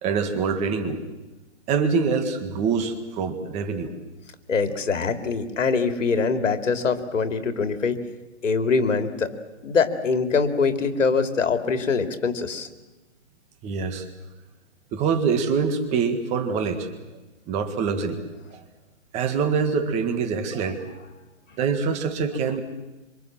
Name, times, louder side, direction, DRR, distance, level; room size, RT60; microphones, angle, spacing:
voice 1, 0.0-1.0 1.7-3.9 13.6-14.1 14.9-16.9 17.5-18.2 18.5-18.6 19.1-20.9 21.6-22.6, right 5 dB, 20° right, 7 dB, 1.9 m, -25 dB
voice 2, 4.5-8.0 8.4-9.3 9.6-12.7 20.7-20.8, left 5 dB, 80° left, 7 dB, 3.1 m, -23 dB
26.5 x 25.5 x 7.6 m, 1.1 s
hypercardioid pair, 160°, 37 cm